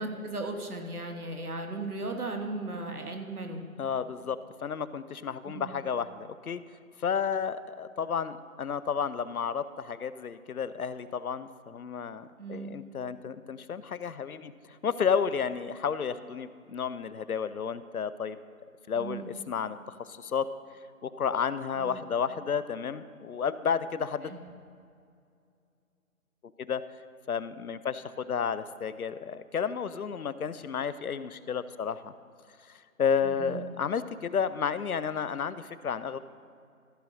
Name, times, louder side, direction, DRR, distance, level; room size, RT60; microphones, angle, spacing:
voice 1, 0.0-3.6 5.4-5.7 12.4-12.7 18.9-19.3 21.8-22.0 24.3-24.4 33.2-33.6, right 2 dB, 85° right, 4 dB, 1.5 m, -36 dB
voice 2, 3.8-6.6 7.0-18.4 18.9-20.5 21.0-24.3 26.6-26.8 27.3-32.1 32.7-36.2, left 7 dB, 80° left, 15 dB, 0.6 m, -32 dB
14.5 x 6.4 x 3.8 m, 2.3 s
figure-of-eight pair, 160°, 43 cm